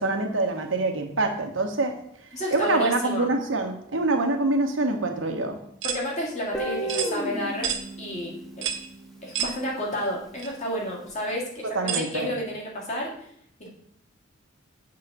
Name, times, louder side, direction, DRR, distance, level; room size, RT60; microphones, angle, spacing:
voice 1, 0.0-1.9 2.5-5.6 11.7-12.3, right 2 dB, 85° right, 3 dB, 1.2 m, -25 dB
voice 2, 2.3-3.3 5.8-7.7 8.0-8.3 8.6-8.7 9.2-13.1 13.6-13.7, left 1 dB, 35° left, -2 dB, 2.1 m, -31 dB
sound 1, 5.8-6.0 6.9-7.1 7.6-7.8 8.6-8.9 9.3-9.6 10.4-10.5 11.9-12.1, right 8 dB, 65° right, 0.8 m, -28 dB
Guitar, 6.5-9.5, right 1 dB, ahead, 1.1 m, -33 dB
7.4 x 3.9 x 6.0 m, 0.67 s
head